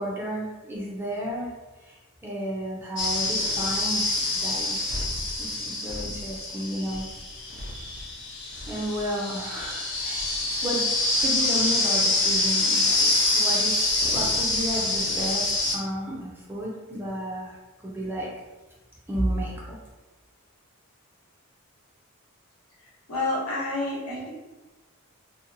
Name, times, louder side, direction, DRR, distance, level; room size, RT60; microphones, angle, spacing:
voice 1, 0.0-1.5 1.8-2.0 2.2-4.0 4.3-5.0 5.4-7.1 7.6-7.7 8.7-10.2 10.6-10.9 11.2-18.3 19.1-19.8, equal, 10° right, -4 dB, 0.4 m, -32 dB
sound 1, 3.0-15.8, left 2 dB, 50° left, 0.6 m, -26 dB
voice 2, 23.1-24.3, left 2 dB, 75° left, -6 dB, 0.9 m, -28 dB
2.8 x 2.1 x 2.5 m, 1.2 s
head